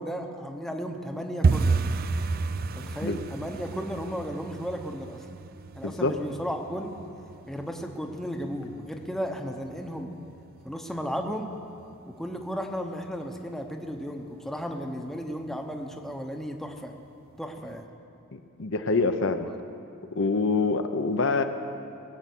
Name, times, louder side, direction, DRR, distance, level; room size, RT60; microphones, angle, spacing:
voice 1, 0.0-1.8 2.7-5.3 5.7-6.9 7.5-10.1 10.6-11.5 12.1-16.9 17.4-17.9, equal, ahead, 3 dB, 0.8 m, -34 dB
sound 1, 1.4-12.2 12.4-13.1 13.4-13.7 13.9-14.3 14.6-14.7 15.2-15.7 16.1-16.2 16.7-16.8, right 4 dB, 40° right, 0.4 m, -32 dB
voice 2, 5.8-6.2 18.3-19.5 20.1-21.4, left 3 dB, 60° left, 7 dB, 0.7 m, -25 dB
20.0 x 7.3 x 8.3 m, 2.7 s
head